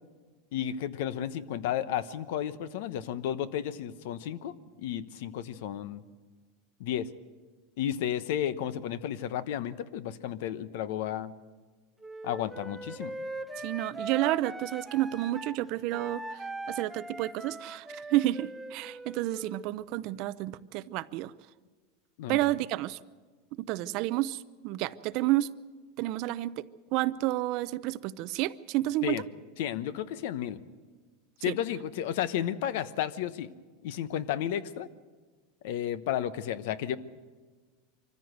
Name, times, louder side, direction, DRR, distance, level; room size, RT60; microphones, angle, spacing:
voice 1, 0.5-6.0 6.8-7.1 7.8-11.3 12.2-13.1 22.2-22.4 29.0-29.2 29.6-30.6 31.4-33.5 33.8-34.9 35.6-37.0, left 10 dB, 70° left, 15 dB, 0.9 m, -32 dB
Wind instrument woodwind instrument, 12.0-15.6 15.9-19.7, right 2 dB, 5° right, 0.8 m, -40 dB
voice 2, 13.6-21.3 22.3-23.0 23.6-25.5 26.0-26.6 26.9-29.2 31.5-31.6, right 16 dB, 50° right, 17 dB, 0.6 m, -30 dB
24.0 x 15.0 x 8.0 m, 1.4 s
supercardioid pair, 145°, 0 cm